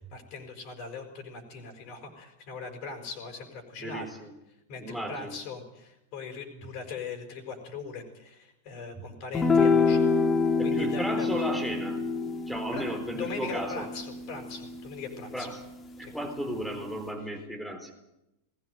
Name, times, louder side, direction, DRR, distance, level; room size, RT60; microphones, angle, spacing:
voice 1, 0.0-4.1 4.7-10.0 10.6-11.3 12.7-15.5 16.0-16.1, left 5 dB, 40° left, 4 dB, 5.2 m, -40 dB
voice 2, 3.8-4.3 4.8-5.4 9.0-9.1 10.6-12.0 12.5-13.9 15.3-15.6 16.0-17.9, right 1 dB, ahead, 3 dB, 4.0 m, -35 dB
sound 1, 9.3-15.9, left 4 dB, 20° left, 2.5 m, -27 dB
20.5 x 16.5 x 9.4 m, 0.90 s
figure-of-eight pair, 90°, 0 cm